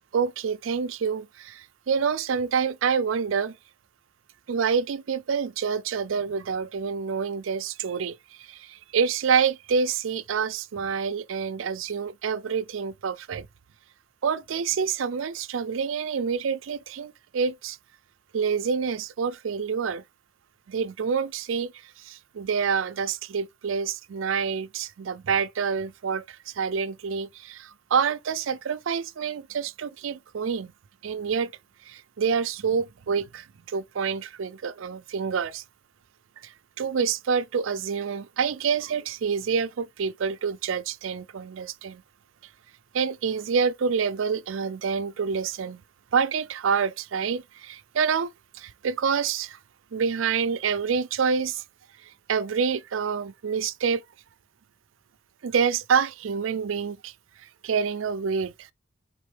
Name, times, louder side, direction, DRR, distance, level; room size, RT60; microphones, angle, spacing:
voice 1, 0.1-3.5 4.5-8.1 8.5-8.6 8.9-13.5 14.2-17.8 18.3-20.0 20.7-21.7 22.1-26.2 26.6-30.7 31.0-31.5 31.9-33.4 33.7-35.6 36.8-42.0 42.9-45.8 46.1-48.3 48.6-49.6 49.9-51.6 52.3-54.0 55.4-57.1 57.6-58.5, right 6 dB, 80° right, 0.4 m, -27 dB
4.2 x 3.7 x 3.3 m
head